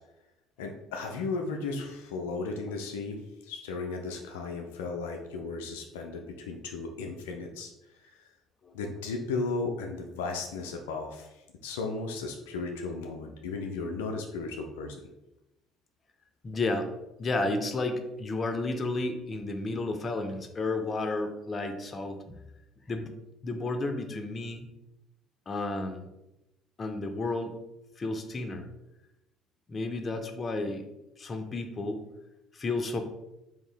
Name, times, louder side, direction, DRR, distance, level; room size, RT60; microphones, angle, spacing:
voice 1, 0.6-7.7 8.0-8.3 8.7-15.0, left 3 dB, 85° left, 2 dB, 0.4 m, -35 dB
voice 2, 16.4-16.9 17.2-22.3 22.9-23.1 23.4-24.7 25.5-26.1 26.8-27.6 28.0-28.6 29.7-30.9 31.2-32.0 32.5-33.0, left 2 dB, 35° left, 6 dB, 0.6 m, -32 dB
3.5 x 2.7 x 3.4 m, 0.93 s
hypercardioid pair, 65°, 0 cm